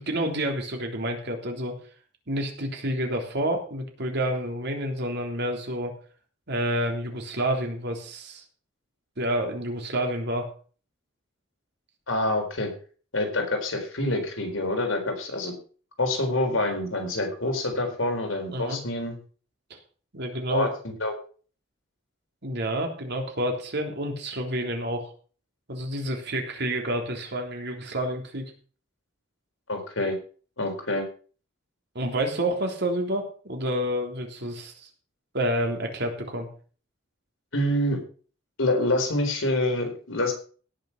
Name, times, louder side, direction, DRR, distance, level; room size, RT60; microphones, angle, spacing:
voice 1, 0.0-1.8 2.3-5.9 6.5-8.4 9.2-10.5 18.5-18.8 20.1-20.7 22.4-25.1 25.7-28.5 32.0-34.9 35.3-36.5, right 1 dB, 60° right, 2 dB, 3.5 m, -29 dB
voice 2, 12.1-12.7 13.1-15.5 16.0-19.2 20.5-20.7 21.0-21.1 29.7-30.2 30.6-31.0 37.5-38.0 38.6-40.3, left 1 dB, 85° left, 4 dB, 4.2 m, -26 dB
17.5 x 6.7 x 5.9 m, 0.41 s
head